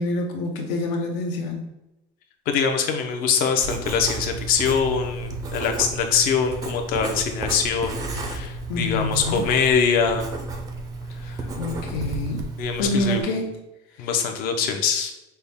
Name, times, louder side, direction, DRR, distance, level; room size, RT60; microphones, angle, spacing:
voice 1, 0.0-1.7 8.7-9.5 11.2-13.6 13.9-14.1, left 1 dB, 75° left, 2 dB, 0.8 m, -27 dB
voice 2, 2.5-10.3 11.3-11.5 12.6-13.2 14.0-15.1, left 6 dB, 50° left, 5 dB, 0.6 m, -23 dB
Writing, 3.6-13.2, right 2 dB, 20° right, 0.4 m, -33 dB
5.5 x 2.1 x 3.4 m, 0.93 s
cardioid pair, 180°, 19 cm